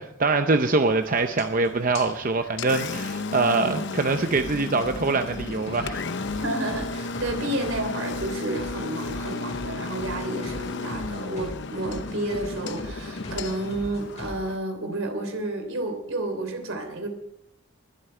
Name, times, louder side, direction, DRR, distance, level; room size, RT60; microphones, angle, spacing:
voice 1, 0.0-6.0, right 3 dB, 40° right, 7 dB, 0.6 m, -24 dB
Engine, 0.5-14.6, left 3 dB, 60° left, 0.8 m, -34 dB
sound 1, 4.2-14.3, equal, 35° left, 5.2 m, -40 dB
voice 2, 6.4-17.1, right 1 dB, 80° right, 5 dB, 3.3 m, -31 dB
21.5 x 8.5 x 4.4 m, 0.79 s
head